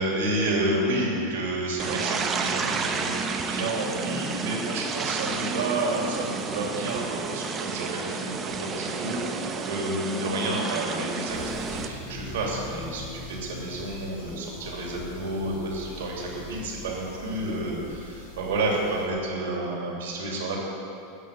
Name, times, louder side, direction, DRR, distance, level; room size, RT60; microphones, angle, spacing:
voice 1, 0.0-3.2 3.5-20.6, right 1 dB, 70° right, -2 dB, 2.8 m, -30 dB
sound 1, 1.8-11.9, right 5 dB, 30° right, 1.0 m, -31 dB
sound 2, 11.3-19.1, left 2 dB, 75° left, 2.8 m, -43 dB
11.0 x 6.7 x 8.4 m, 2.7 s
hypercardioid pair, 90°, 0 cm